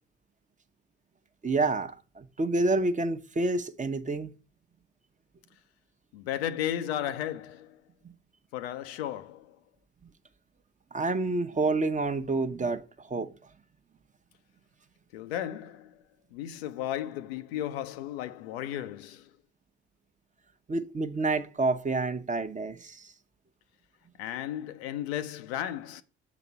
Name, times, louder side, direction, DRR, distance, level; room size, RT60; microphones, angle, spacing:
voice 1, 1.4-4.3 10.9-13.3 20.7-23.1, right 3 dB, 25° right, 0.7 m, -28 dB
voice 2, 6.1-7.8 8.5-9.6 15.1-16.0 16.3-19.3 24.2-26.0, left 11 dB, 90° left, 0.5 m, -34 dB
6.6 x 4.0 x 5.5 m
hypercardioid pair, 50°, 30 cm